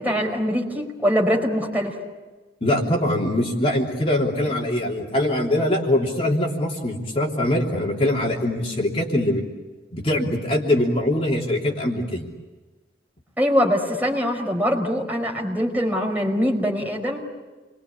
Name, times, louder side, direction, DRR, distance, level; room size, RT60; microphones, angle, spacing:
voice 1, 0.0-1.9 13.4-17.2, equal, 10° right, 0 dB, 5.0 m, -23 dB
voice 2, 2.6-9.4 9.9-12.2, left 1 dB, 35° left, -2 dB, 3.2 m, -22 dB
29.5 x 23.0 x 8.6 m, 1.3 s
head